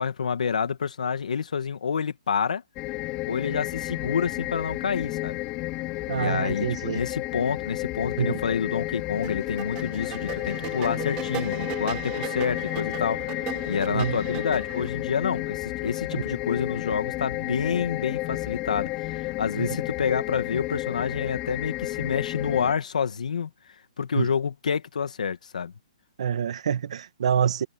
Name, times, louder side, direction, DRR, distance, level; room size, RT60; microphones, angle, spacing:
voice 1, 0.0-2.6 3.3-5.4 6.1-23.5 24.0-25.7, left 6 dB, 85° left, 2.3 m, -28 dB
sound 1, 2.8-22.7, left 20 dB, 20° left, 4.3 m, -32 dB
voice 2, 6.1-7.0 8.2-8.4 13.9-14.1 16.1-16.2 19.6-19.7 24.2-24.3 26.2-27.6, right 8 dB, 60° right, 1.9 m, -26 dB
sound 2, 9.2-14.9, right 19 dB, 20° right, 4.7 m, -38 dB
hypercardioid pair, 170°, 4 cm